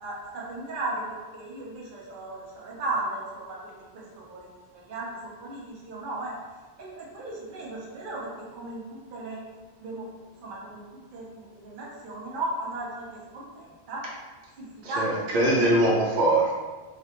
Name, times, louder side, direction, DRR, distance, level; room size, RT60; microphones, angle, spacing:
voice 1, 0.0-6.3 6.8-9.4 9.8-10.1 10.4-14.1 14.6-15.0 15.3-15.9, right 2 dB, 55° right, -4 dB, 0.7 m, -36 dB
voice 2, 14.8-16.6, right 1 dB, 90° right, -4 dB, 0.9 m, -22 dB
2.4 x 2.1 x 2.8 m, 1.3 s
omnidirectional pair, 1.1 m